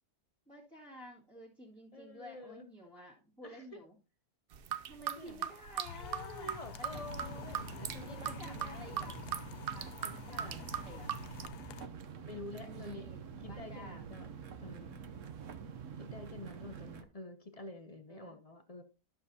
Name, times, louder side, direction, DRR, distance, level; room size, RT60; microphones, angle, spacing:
voice 1, 0.5-4.0 4.9-6.6 7.2-7.3 8.0-9.2 9.6-11.1 12.6-14.2 18.1-18.3, equal, 5° left, 1.8 m, -52 dB
voice 2, 1.9-2.7 3.4-3.7 4.9-5.5 6.0-9.2 10.0-10.7 12.2-13.1 13.4-14.3 14.6-15.0 16.0-18.8, left 2 dB, 45° left, 0.5 m, -48 dB
sound 1, 4.5-11.5, right 9 dB, 90° right, 0.5 m, -39 dB
sound 2, 5.8-11.9, left 8 dB, 85° left, 1.2 m, -49 dB
sound 3, 6.9-17.0, right 7 dB, 60° right, 1.0 m, -47 dB
12.0 x 6.7 x 2.7 m
omnidirectional pair, 1.7 m